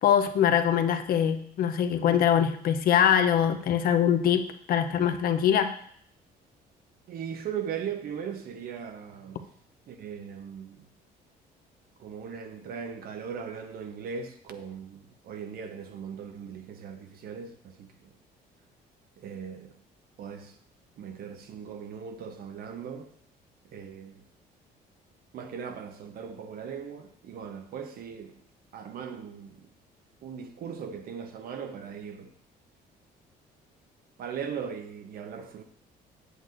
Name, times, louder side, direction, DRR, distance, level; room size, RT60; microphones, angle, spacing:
voice 1, 0.0-5.7, left 9 dB, 60° left, 0.7 m, -23 dB
voice 2, 7.1-9.5 9.9-10.9 12.0-18.1 19.2-19.7 20.2-20.6 21.0-23.1 23.7-24.3 25.3-28.4 28.7-29.6 30.2-32.3 34.2-35.6, right 7 dB, 65° right, 0.9 m, -39 dB
8.0 x 7.7 x 2.6 m
cardioid pair, 110°, 17 cm